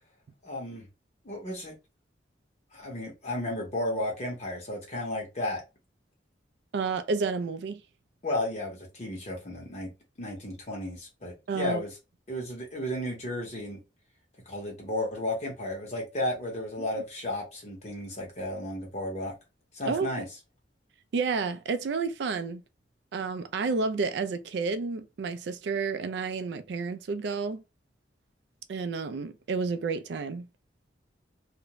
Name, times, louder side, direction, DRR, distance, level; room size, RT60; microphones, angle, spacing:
voice 1, 0.4-0.9 1.2-1.7 2.7-5.6 8.2-9.9 10.2-11.9 12.3-13.8 14.5-19.3 19.7-20.3, left 1 dB, 35° left, 1.0 m, -33 dB
voice 2, 6.7-7.8 11.5-11.8 16.8-17.0 19.8-20.3 21.1-22.6 23.1-27.6 28.7-30.5, right 4 dB, 65° right, 0.3 m, -30 dB
2.5 x 2.1 x 2.9 m
head